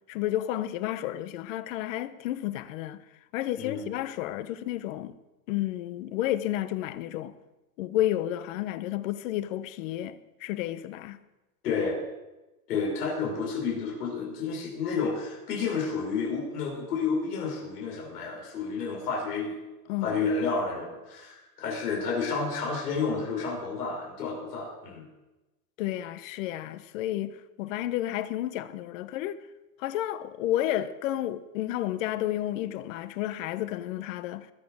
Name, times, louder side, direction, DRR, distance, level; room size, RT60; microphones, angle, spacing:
voice 1, 0.1-3.0 3.3-5.1 5.5-7.4 7.8-11.2 19.9-20.2 25.8-29.4 29.8-34.5, left 13 dB, 55° left, 1.0 m, -31 dB
voice 2, 3.6-3.9 11.6-12.0 12.7-19.5 20.0-25.0, left 4 dB, 80° left, 5.9 m, -30 dB
20.5 x 7.2 x 6.7 m
supercardioid pair, 140°, 46 cm